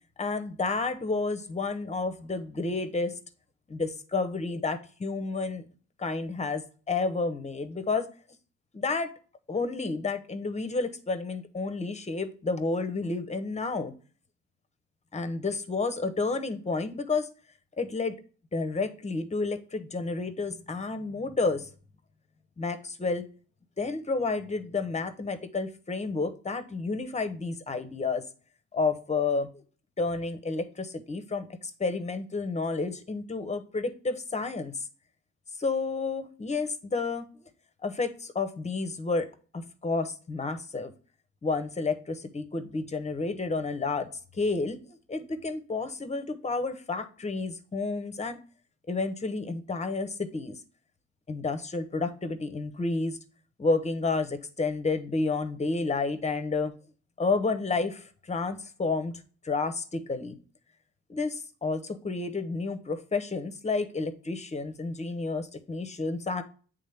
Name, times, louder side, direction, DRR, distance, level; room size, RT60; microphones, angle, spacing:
voice 1, 0.2-3.1 3.7-5.7 6.0-8.1 8.7-9.1 9.5-13.9 15.1-17.3 17.8-18.1 18.5-21.7 22.6-23.2 23.8-28.2 28.7-29.6 30.0-34.8 35.6-37.3 37.8-39.3 39.5-40.9 41.4-48.4 48.9-50.6 51.3-53.2 53.6-56.7 57.2-60.4 61.1-66.4, left 3 dB, 20° left, 10 dB, 0.8 m, -30 dB
8.3 x 3.6 x 3.4 m, 0.40 s
cardioid pair, 90°, 30 cm